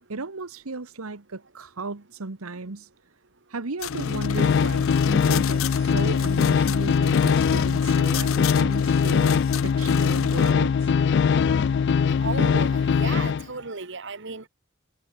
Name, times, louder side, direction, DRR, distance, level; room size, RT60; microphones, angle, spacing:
voice 1, 0.1-2.9 3.5-10.9, right 3 dB, 85° right, 1.3 m, -35 dB
sound 1, 3.8-10.5, left 8 dB, 75° left, 0.8 m, -34 dB
sound 2, 3.9-13.4, left 6 dB, 55° left, 0.3 m, -21 dB
voice 2, 12.2-14.5, right 3 dB, 55° right, 1.8 m, -34 dB
head